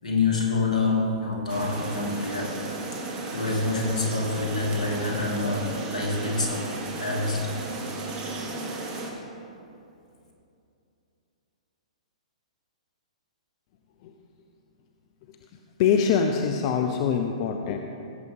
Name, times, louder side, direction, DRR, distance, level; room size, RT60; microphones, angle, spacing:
voice 1, 0.0-2.6 3.3-7.5, left 3 dB, 80° left, -2 dB, 2.6 m, -27 dB
sound 1, 1.5-9.1, right 2 dB, 30° right, 1.8 m, -34 dB
voice 2, 15.8-17.8, left 7 dB, 45° left, 4 dB, 0.6 m, -24 dB
17.0 x 7.7 x 3.7 m, 2.6 s
hypercardioid pair, 120°, 4 cm